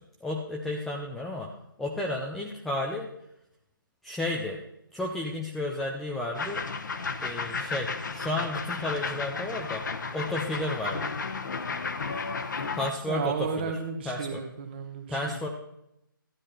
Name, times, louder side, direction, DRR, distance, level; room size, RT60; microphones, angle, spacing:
voice 1, 0.0-1.5 1.8-3.1 4.0-4.6 4.9-6.6 7.2-9.8 10.1-11.1 12.7-13.7 14.0-14.4 15.1-15.5, left 1 dB, ahead, -1 dB, 0.4 m, -32 dB
sound 1, 6.3-12.9, left 4 dB, 55° left, 1.1 m, -33 dB
voice 2, 13.1-15.3, right 6 dB, 30° right, 6 dB, 1.4 m, -33 dB
12.5 x 9.7 x 4.3 m, 0.82 s
figure-of-eight pair, 155°, 12 cm